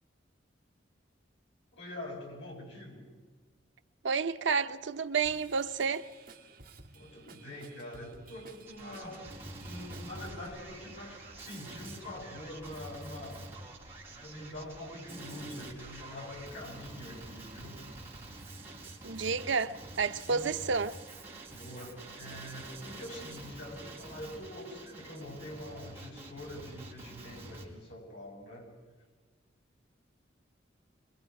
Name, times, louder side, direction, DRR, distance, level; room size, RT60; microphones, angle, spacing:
voice 1, 1.7-3.0 6.9-9.4 9.6-13.5 14.1-17.8 19.7-19.8 20.3-20.6 21.5-28.7, left 1 dB, 70° left, 7.5 m, -45 dB
voice 2, 4.0-6.1 19.0-20.9, right 5 dB, 75° right, 0.7 m, -30 dB
Drum kit / Drum, 5.2-10.6, right 3 dB, 45° right, 2.3 m, -54 dB
Male speech man speaking, 8.7-27.7, right 2 dB, 10° right, 4.1 m, -47 dB
25.0 x 22.5 x 4.8 m
head